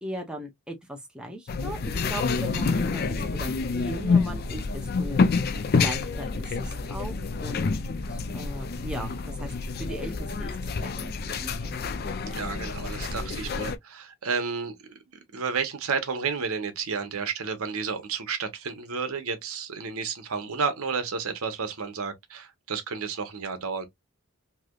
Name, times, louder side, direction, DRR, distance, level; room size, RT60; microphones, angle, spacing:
voice 1, 0.0-5.2 5.7-7.7 8.1-11.7, right 1 dB, 5° right, 0.6 m, -38 dB
sound 1, 1.5-13.8, left 4 dB, 45° left, 0.3 m, -28 dB
voice 2, 12.2-15.0 15.3-23.9, right 5 dB, 80° right, 0.9 m, -31 dB
3.3 x 2.7 x 2.3 m
head